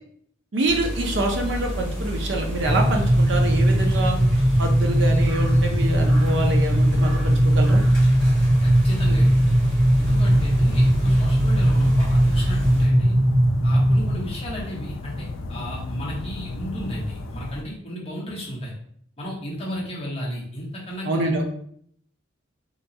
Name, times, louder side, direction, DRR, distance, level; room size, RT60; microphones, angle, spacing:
voice 1, 0.5-4.2 4.6-7.8 21.0-21.4, right 2 dB, 60° right, 2 dB, 0.5 m, -26 dB
sound 1, 0.6-12.8, equal, 5° left, 1.1 m, -30 dB
sound 2, 2.6-14.1, right 1 dB, 40° right, 1.4 m, -19 dB
voice 2, 8.6-9.4 10.0-13.2 13.6-18.7 19.2-21.4, equal, 30° left, -5 dB, 0.8 m, -33 dB
sound 3, 10.1-17.6, left 2 dB, 75° left, 0.3 m, -35 dB
2.9 x 2.2 x 2.6 m, 0.65 s
head